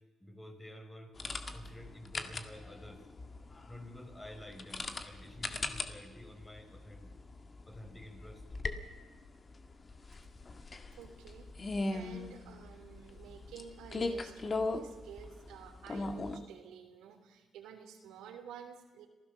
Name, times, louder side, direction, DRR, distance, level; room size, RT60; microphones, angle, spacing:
voice 1, 0.2-1.1 1.5-3.0 3.7-7.1 7.7-8.4, left 1 dB, 15° left, 4 dB, 4.6 m, -50 dB
sound 1, 1.2-16.4, left 3 dB, 35° left, 1.8 m, -40 dB
voice 2, 10.9-19.1, right 8 dB, 90° right, 4 dB, 3.0 m, -51 dB
26.0 x 16.0 x 6.8 m, 1.3 s
cardioid pair, 90°, 0 cm